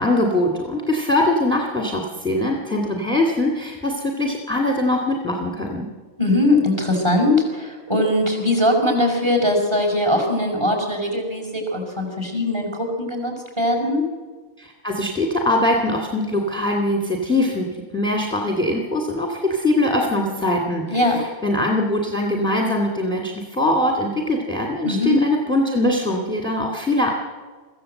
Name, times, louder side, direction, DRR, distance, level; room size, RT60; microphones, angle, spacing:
voice 1, 0.0-5.9 14.6-17.7 17.9-27.1, left 1 dB, 5° left, 0 dB, 2.3 m, -22 dB
voice 2, 6.2-14.0 20.9-21.2 24.8-25.2, left 1 dB, 20° right, 2 dB, 5.3 m, -20 dB
23.5 x 15.5 x 7.9 m, 1.4 s
omnidirectional pair, 1.3 m